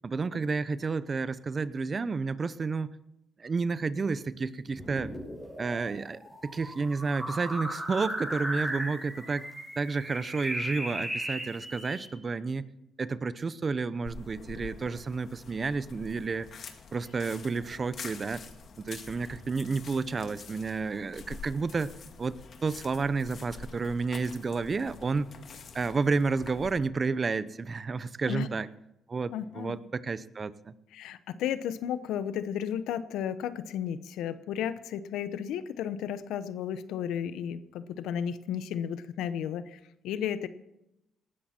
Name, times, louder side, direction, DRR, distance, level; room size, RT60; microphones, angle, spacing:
voice 1, 0.0-2.9 3.4-5.1 5.6-9.5 9.8-12.7 13.0-16.5 16.9-18.4 18.8-21.9 22.2-25.3 25.7-28.7 29.1-30.7, right 4 dB, 35° right, 16 dB, 0.7 m, -31 dB
sound 1, 4.7-12.1, right 1 dB, 10° right, 6.7 m, -37 dB
sound 2, 14.1-26.7, left 5 dB, 55° left, 2.0 m, -47 dB
voice 2, 29.3-29.8 30.9-40.5, left 9 dB, 90° left, 13 dB, 0.9 m, -33 dB
19.0 x 13.0 x 4.4 m, 0.86 s
cardioid pair, 90°, 0 cm